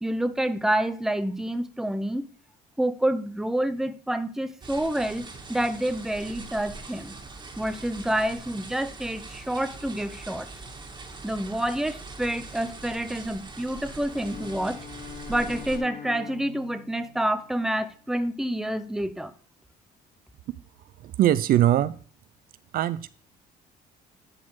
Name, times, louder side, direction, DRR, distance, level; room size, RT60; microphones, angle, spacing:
voice 1, 0.0-2.2 2.8-7.2 7.6-10.5 11.2-14.8 15.3-19.3, right 1 dB, 5° right, 0.7 m, -28 dB
sound 1, 4.6-15.8, right 3 dB, 25° right, 1.9 m, -42 dB
Bowed string instrument, 13.9-18.0, left 7 dB, 50° left, 2.5 m, -44 dB
voice 2, 21.0-22.0 22.7-23.1, right 12 dB, 60° right, 0.5 m, -21 dB
11.0 x 4.3 x 4.7 m
cardioid pair, 110°, 17 cm